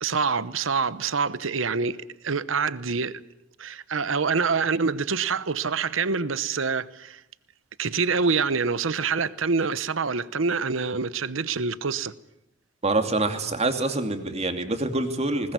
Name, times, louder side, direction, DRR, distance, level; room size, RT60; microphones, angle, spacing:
voice 1, 0.0-3.2 3.6-7.2 7.8-12.1, right 5 dB, 70° right, 0.9 m, -26 dB
voice 2, 12.8-15.5, right 2 dB, 35° right, 2.6 m, -26 dB
20.5 x 20.0 x 9.5 m
head